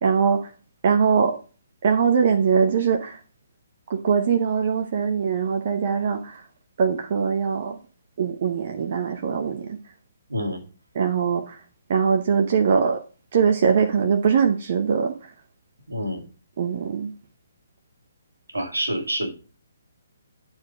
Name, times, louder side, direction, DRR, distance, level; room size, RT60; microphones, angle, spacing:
voice 1, 0.0-0.5 0.8-1.3 1.8-3.2 3.9-6.4 6.8-7.8 8.2-9.8 10.9-11.6 11.9-13.0 13.3-15.3 16.6-17.1, right 6 dB, 45° right, 0.9 m, -22 dB
voice 2, 15.9-16.2 18.5-19.3, equal, 75° right, 2.1 m, -27 dB
9.7 x 4.5 x 5.1 m
figure-of-eight pair, 130°, 0 cm